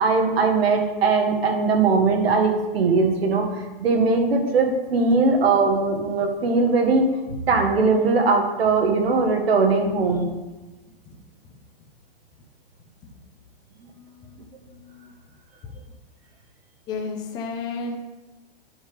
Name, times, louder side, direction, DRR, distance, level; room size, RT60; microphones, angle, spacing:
voice 1, 0.0-10.3, right 4 dB, 80° right, 3 dB, 1.7 m, -20 dB
voice 2, 16.9-18.0, left 4 dB, 15° left, 3 dB, 0.6 m, -31 dB
10.5 x 3.6 x 5.1 m, 1.1 s
hypercardioid pair, 165°, 30 cm